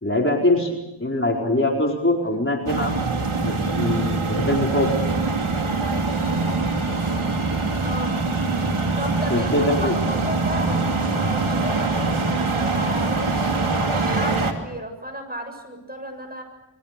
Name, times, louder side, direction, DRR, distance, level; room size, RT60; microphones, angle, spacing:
voice 1, 0.0-3.0 3.4-4.9 9.3-9.9, left 1 dB, 25° left, -1 dB, 4.7 m, -23 dB
sound 1, 2.7-14.5, right 3 dB, 75° right, 2.9 m, -23 dB
voice 2, 7.8-8.2 9.0-10.8 11.1-16.4, equal, 20° right, 5 dB, 7.4 m, -33 dB
29.0 x 22.5 x 6.8 m, 0.95 s
wide cardioid pair, 50°, 49 cm